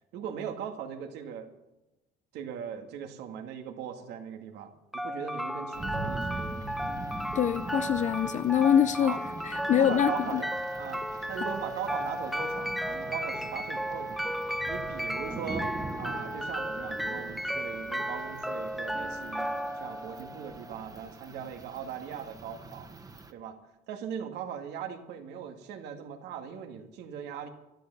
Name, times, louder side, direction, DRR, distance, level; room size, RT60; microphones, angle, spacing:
voice 1, 0.1-1.5 2.3-6.5 9.0-9.2 9.7-14.3 14.7-15.7 16.0-22.9 23.3-23.6 23.9-27.5, right 8 dB, 85° right, 6 dB, 2.0 m, -39 dB
sound 1, 4.9-20.9, equal, ahead, 0.9 m, -34 dB
sound 2, 5.7-23.3, right 3 dB, 20° right, 1.4 m, -43 dB
voice 2, 7.3-9.2 9.4-10.4, left 9 dB, 45° left, 12 dB, 0.6 m, -24 dB
13.0 x 12.5 x 6.9 m, 0.95 s
cardioid pair, 110°, 17 cm